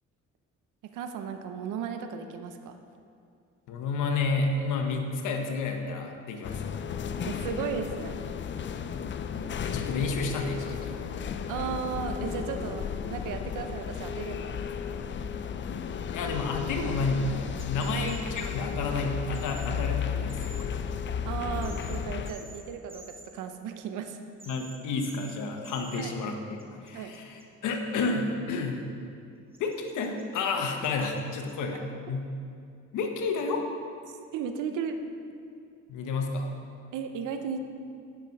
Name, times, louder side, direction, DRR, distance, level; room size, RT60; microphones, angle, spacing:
voice 1, 0.8-2.8 7.2-8.2 11.5-12.8 13.1-14.5 17.9-18.1 21.2-24.2 26.0-26.1 26.9-27.1 34.1-35.0 36.9-37.6, right 7 dB, 85° right, 7 dB, 0.7 m, -35 dB
voice 2, 3.7-6.7 9.6-10.9 16.1-20.8 24.5-28.8 29.6-32.3 32.9-33.7 35.9-36.5, left 3 dB, 85° left, 3 dB, 1.1 m, -31 dB
sound 1, 6.4-22.3, left 7 dB, 40° left, 0.4 m, -34 dB
sound 2, 17.6-18.5 19.3-19.7 20.3-20.6 21.6-22.0 22.3-22.6 22.9-23.2 24.4-24.8 25.0-25.4 25.6-26.0 26.6-28.0 29.5-30.4 30.8-31.5, right 3 dB, 20° right, 1.3 m, -49 dB
9.2 x 6.0 x 5.4 m, 2.4 s
cardioid pair, 90°, 30 cm